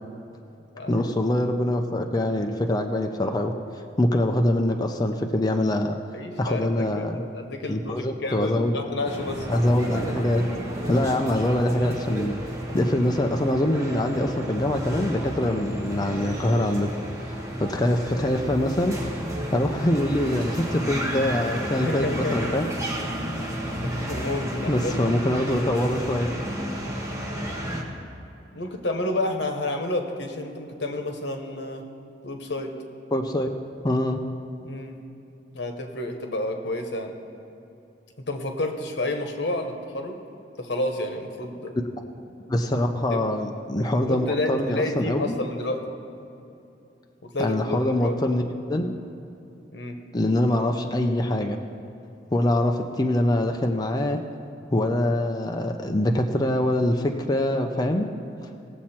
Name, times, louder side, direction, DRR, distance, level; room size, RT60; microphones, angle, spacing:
voice 1, 0.9-3.5 4.0-6.0 6.4-7.2 7.7-8.8 9.5-10.4 10.9-12.3 12.7-16.9 17.3-19.0 19.5-22.7 24.7-26.3 33.1-33.5 33.8-34.2 42.5-45.4 47.4-48.9 50.1-51.6 52.3-54.2 54.7-58.1, left 1 dB, 20° left, 3 dB, 0.5 m, -24 dB
voice 2, 6.1-6.7 7.0-9.5 11.0-11.1 21.8-22.5 23.8-25.4 28.5-31.8 32.2-32.7 34.6-34.9 35.5-37.1 38.3-40.2 40.6-41.7 43.1-43.2 44.1-45.8 47.2-48.2 49.7-50.0, left 2 dB, 80° left, 4 dB, 1.2 m, -30 dB
sound 1, 9.0-27.8, equal, 15° right, 1.4 m, -32 dB
18.5 x 7.3 x 4.4 m, 2.7 s
head